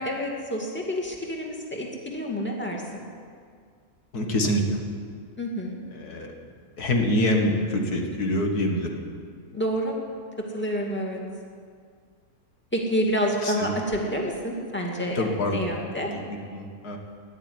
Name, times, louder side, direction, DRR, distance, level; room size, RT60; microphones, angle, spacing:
voice 1, 0.0-3.0 5.4-5.8 9.5-9.9 10.5-11.2 12.7-16.1, equal, 5° left, 0 dB, 2.2 m, -28 dB
voice 2, 4.1-4.8 5.9-6.3 6.8-8.9 13.4-13.7 15.2-15.6 16.1-17.0, left 1 dB, 85° left, 2 dB, 2.3 m, -25 dB
13.5 x 11.0 x 9.7 m, 2.1 s
omnidirectional pair, 1.6 m